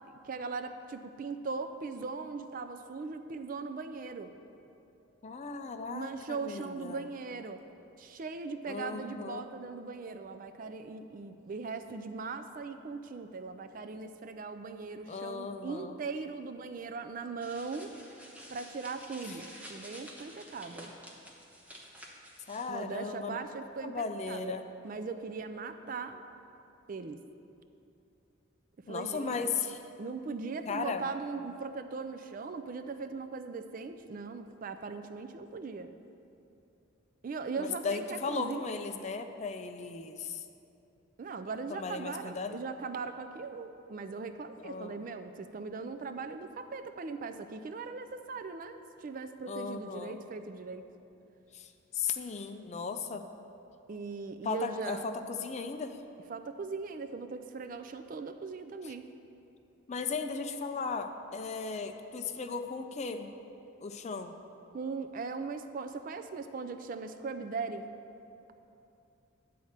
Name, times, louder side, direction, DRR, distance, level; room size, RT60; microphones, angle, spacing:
voice 1, 0.1-4.3 5.9-7.6 8.0-17.9 18.5-20.9 22.7-24.5 24.8-26.2 26.9-27.2 28.9-29.5 30.0-35.9 37.2-38.7 41.2-50.9 53.9-55.0 56.3-59.0 64.7-67.9, right 4 dB, 40° right, 8 dB, 0.4 m, -39 dB
voice 2, 5.2-7.1 8.7-9.4 15.1-16.0 22.5-23.4 23.8-24.6 28.9-29.8 30.7-31.1 37.6-40.4 41.7-42.6 44.6-45.0 49.5-50.2 51.5-53.3 54.4-56.0 58.8-58.9 59.9-63.3 63.8-64.4, left 5 dB, 35° left, 7 dB, 0.4 m, -36 dB
sound 1, 17.4-22.7, equal, 5° right, 1.0 m, -50 dB
10.5 x 4.2 x 7.3 m, 2.8 s
head